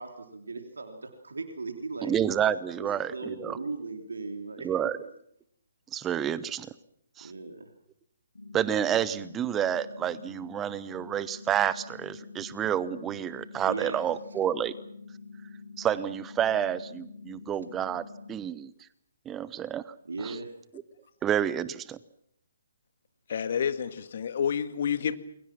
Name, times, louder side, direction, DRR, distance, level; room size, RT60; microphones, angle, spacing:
voice 1, 0.0-2.1 2.8-4.7 5.0-5.1 7.2-7.7 13.6-14.0 20.0-20.5, right 3 dB, 65° right, 4 dB, 3.2 m, -37 dB
voice 2, 2.0-3.6 4.6-5.0 5.9-6.7 7.2-7.3 8.5-14.7 15.8-18.7 19.3-19.9 20.2-20.4 21.2-22.0, right 9 dB, 15° right, 17 dB, 0.9 m, -29 dB
sound 1, 8.3-18.4, left 4 dB, 70° left, 7.9 m, -46 dB
voice 3, 23.3-25.1, left 7 dB, 45° left, 11 dB, 1.7 m, -29 dB
29.0 x 22.5 x 6.1 m, 0.72 s
figure-of-eight pair, 135°, 0 cm